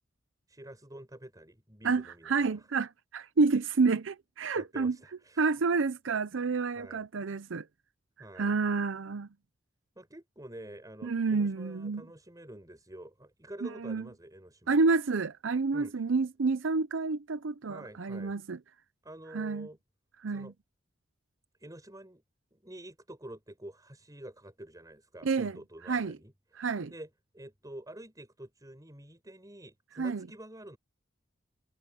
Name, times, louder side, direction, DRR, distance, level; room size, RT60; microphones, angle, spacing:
voice 1, 0.5-2.7 4.5-5.5 6.7-7.0 8.2-8.5 9.9-14.8 15.7-16.1 17.7-18.3 19.0-19.8 20.3-20.5 21.6-22.2 22.5-26.6 26.9-27.1 27.3-30.8, right 1 dB, 20° right, 6.6 m, -48 dB
voice 2, 1.8-5.0 5.4-7.7 8.4-9.3 11.0-12.1 13.6-14.0 14.7-18.6 19.3-19.7 20.2-20.5 25.2-25.6 25.9-26.2 26.6-26.9 30.0-30.3, right 4 dB, 80° right, 0.6 m, -29 dB
head